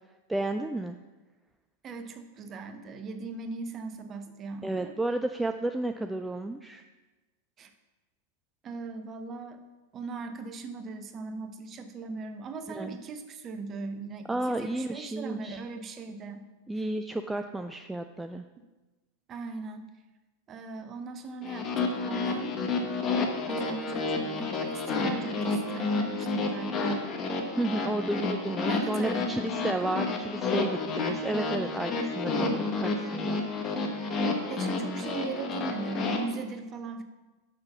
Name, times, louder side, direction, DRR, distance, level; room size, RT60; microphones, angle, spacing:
voice 1, 0.3-1.0 4.6-6.8 12.7-13.0 14.3-15.6 16.7-18.4 27.5-33.4, right 2 dB, 5° right, 6 dB, 0.3 m, -32 dB
voice 2, 1.8-4.9 7.6-7.7 8.6-9.6 9.9-16.4 16.8-16.9 19.3-19.9 20.5-22.6 23.5-27.0 28.6-30.2 34.5-37.0, right 4 dB, 25° right, 8 dB, 0.8 m, -39 dB
sound 1, 21.4-36.2, left 3 dB, 30° left, 1.1 m, -30 dB
6.6 x 5.9 x 5.6 m, 1.2 s
figure-of-eight pair, 90°, 0 cm